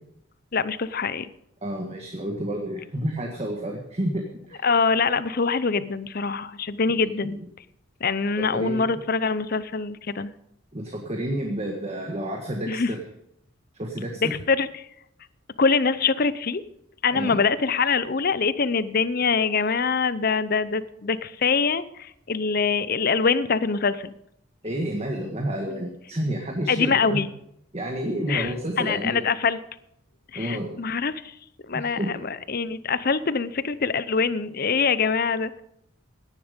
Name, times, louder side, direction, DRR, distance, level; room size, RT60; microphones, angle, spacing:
voice 1, 0.5-1.3 4.6-7.4 8.0-10.3 12.7-12.9 14.2-14.7 15.6-16.6 17.0-24.1 26.7-27.3 28.3-29.6 30.3-31.3 31.7-35.6, left 5 dB, 45° left, 16 dB, 0.7 m, -24 dB
voice 2, 1.6-4.7 7.0-7.3 8.4-8.9 10.7-13.0 13.7-14.4 17.1-17.4 24.6-27.2 27.7-29.2 30.4-30.7 31.7-32.3, right 1 dB, 30° right, 2 dB, 1.7 m, -30 dB
17.0 x 11.0 x 5.2 m, 0.76 s
head